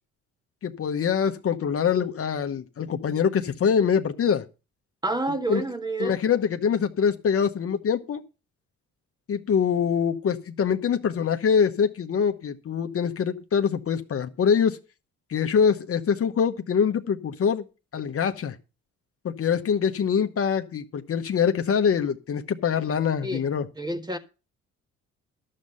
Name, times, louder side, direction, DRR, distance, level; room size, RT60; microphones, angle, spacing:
voice 1, 0.6-4.4 5.5-5.6 6.0-8.2 9.3-14.8 15.3-17.7 17.9-18.6 19.2-23.6, left 7 dB, 50° left, 1.0 m, -24 dB
voice 2, 5.0-6.2 23.2-23.4 23.8-24.2, right 2 dB, 15° right, 1.6 m, -28 dB
11.5 x 7.6 x 5.4 m
cardioid pair, 90°, 30 cm